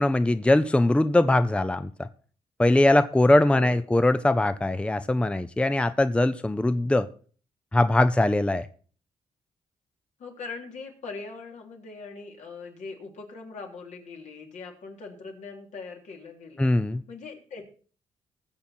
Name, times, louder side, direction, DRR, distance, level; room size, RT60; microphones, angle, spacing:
voice 1, 0.0-2.1 2.6-7.1 7.7-8.7 16.6-17.0, left 1 dB, 10° left, 12 dB, 0.6 m, -21 dB
voice 2, 3.5-4.0 10.2-16.7 17.1-17.7, left 4 dB, 70° left, 1 dB, 3.4 m, -41 dB
20.0 x 7.1 x 4.4 m, 0.42 s
cardioid pair, 85°, 13 cm